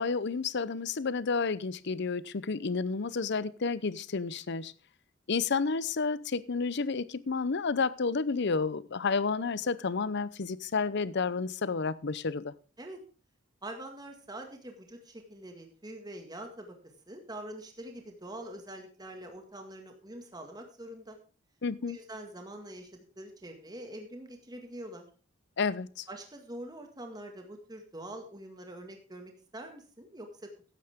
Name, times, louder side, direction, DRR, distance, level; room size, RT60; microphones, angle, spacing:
voice 1, 0.0-4.7 5.3-12.5 21.6-22.0 25.6-26.1, left 4 dB, 60° left, 0.7 m, -31 dB
voice 2, 13.6-16.7 17.1-21.2 21.8-25.1 26.1-30.5, right 1 dB, 20° right, 1.9 m, -44 dB
14.5 x 10.5 x 3.6 m
head